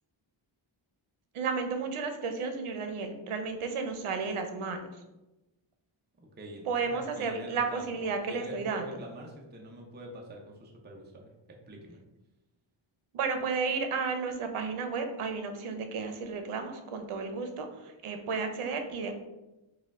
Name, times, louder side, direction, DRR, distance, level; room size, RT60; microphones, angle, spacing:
voice 1, 1.3-4.8 6.7-8.9 13.1-19.1, right 4 dB, 80° right, 6 dB, 0.7 m, -33 dB
voice 2, 6.2-11.3 11.7-12.0, right 1 dB, 20° right, 0 dB, 0.6 m, -45 dB
4.3 x 2.3 x 3.6 m, 1.0 s
wide cardioid pair, 115°, 50 cm